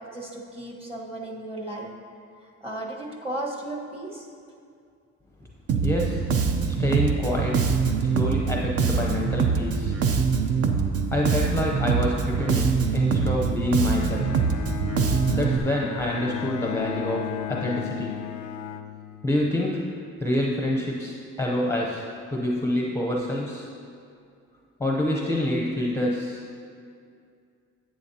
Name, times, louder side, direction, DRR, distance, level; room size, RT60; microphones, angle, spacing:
voice 1, 0.0-1.9 2.6-4.3, right 1 dB, 20° right, -1 dB, 1.3 m, -35 dB
Bass guitar, 5.7-15.6, right 5 dB, 50° right, 0.7 m, -24 dB
voice 2, 5.8-6.2 6.7-7.7 8.0-10.0 11.1-14.4 15.3-18.2 19.2-19.9 20.2-22.0 22.3-23.7 24.8-26.4, left 1 dB, 10° left, -1 dB, 0.7 m, -27 dB
Bowed string instrument, 13.8-19.6, left 11 dB, 70° left, 0.5 m, -35 dB
11.0 x 8.7 x 2.8 m, 2.4 s
cardioid pair, 120°, 30 cm